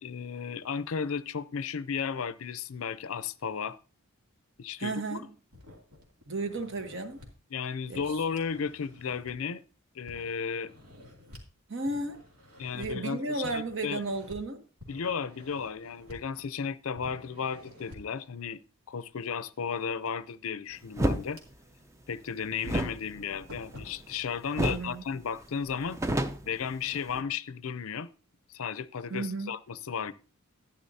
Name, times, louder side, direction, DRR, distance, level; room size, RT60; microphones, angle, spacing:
voice 1, 0.0-3.8 4.6-5.2 7.5-9.6 9.9-10.7 12.6-14.0 14.9-18.6 18.9-21.4 22.1-26.0 26.5-28.1 28.5-30.1, left 6 dB, 70° left, 0.5 m, -34 dB
voice 2, 4.8-5.3 6.3-7.2 7.9-8.0 11.7-12.2 12.7-14.6 24.6-25.0 29.1-29.5, right 2 dB, 55° right, 1.1 m, -33 dB
sound 1, 5.5-7.3 7.9-9.6 10.1-11.5 11.9-12.9 13.4-14.4 14.8-16.6 16.9-18.2 20.1-20.2 20.7-21.9 22.2-22.3 22.8-24.8, left 1 dB, 80° right, 2.6 m, -51 dB
sound 2, 21.0-21.2 22.6-24.2 24.6-24.9 25.2-25.3 25.7-27.2, right 1 dB, 15° right, 0.5 m, -30 dB
12.5 x 10.0 x 2.7 m
head